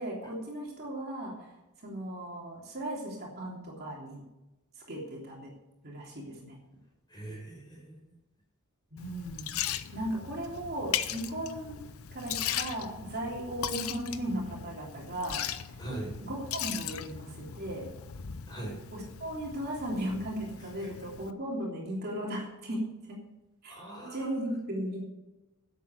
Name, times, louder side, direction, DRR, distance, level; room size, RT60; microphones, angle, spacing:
voice 1, 0.0-1.5 1.8-4.2 4.9-5.5 5.8-6.6 8.9-9.5 9.9-11.8 12.1-15.8 16.2-17.9 18.9-23.2 23.6-23.8 24.1-25.0, right 1 dB, 45° right, -3 dB, 3.2 m, -36 dB
voice 2, 7.1-8.0 15.8-16.1 18.5-18.8 23.7-24.3, right 2 dB, 20° left, -1 dB, 5.1 m, -40 dB
Liquid, 9.0-21.3, left 10 dB, 70° left, 0.7 m, -38 dB
11.0 x 8.3 x 7.7 m, 1.0 s
head